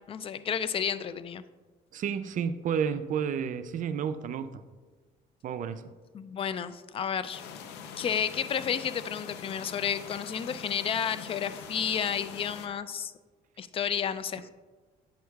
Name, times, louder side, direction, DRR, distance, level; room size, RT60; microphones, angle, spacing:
voice 1, 0.0-1.4 6.1-7.5 8.0-13.1 13.6-14.4, left 8 dB, 35° left, 14 dB, 0.3 m, -31 dB
voice 2, 1.9-4.6 5.4-5.8, right 7 dB, 50° right, 12 dB, 0.4 m, -31 dB
sound 1, 7.3-12.7, left 7 dB, 85° left, 0.6 m, -43 dB
8.4 x 6.2 x 2.3 m, 1.4 s
cardioid pair, 110°, 17 cm